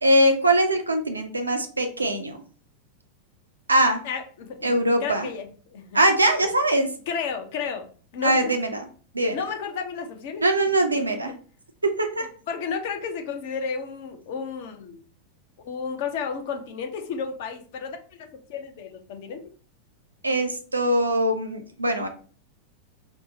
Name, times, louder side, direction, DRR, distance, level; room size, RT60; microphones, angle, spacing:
voice 1, 0.0-2.4 3.7-4.0 4.6-5.3 5.9-6.9 8.2-8.8 9.1-9.4 10.4-11.3 11.8-12.3 20.2-22.1, right 1 dB, 80° right, 6 dB, 0.4 m, -22 dB
voice 2, 4.0-6.0 7.1-8.5 9.3-10.4 11.3-11.4 12.2-15.0 15.6-19.4, left 6 dB, 50° left, 5 dB, 0.6 m, -32 dB
4.3 x 2.0 x 2.8 m, 0.41 s
figure-of-eight pair, 90°, 0 cm